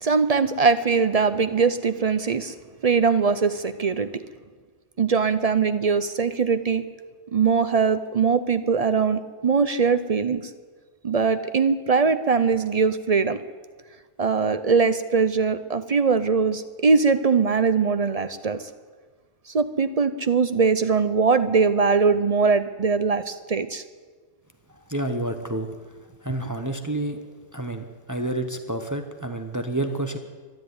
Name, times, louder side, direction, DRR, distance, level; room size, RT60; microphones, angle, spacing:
voice 1, 0.0-2.5 2.8-4.1 5.0-6.8 7.3-10.5 11.0-13.4 14.2-18.7 19.5-23.8, right 5 dB, 45° right, 12 dB, 0.5 m, -21 dB
voice 2, 24.9-25.7 26.2-27.2 27.5-30.2, right 1 dB, 15° right, 6 dB, 0.9 m, -29 dB
13.0 x 11.5 x 9.5 m, 1.5 s
omnidirectional pair, 1.3 m